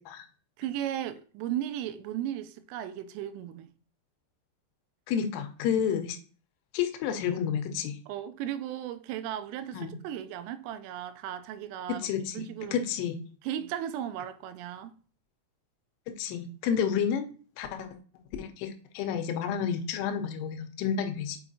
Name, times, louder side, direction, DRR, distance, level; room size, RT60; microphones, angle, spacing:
voice 1, 0.6-3.7 8.1-12.1 12.3-12.8 13.4-15.0 16.7-16.8, right 11 dB, 90° right, 3.1 m, -36 dB
voice 2, 5.1-6.2 6.7-8.0 9.7-9.9 12.0-12.5 12.7-13.2 16.2-17.3 17.6-17.9 18.4-21.4, left 8 dB, 85° left, 3.3 m, -30 dB
7.3 x 5.2 x 2.7 m
omnidirectional pair, 5.6 m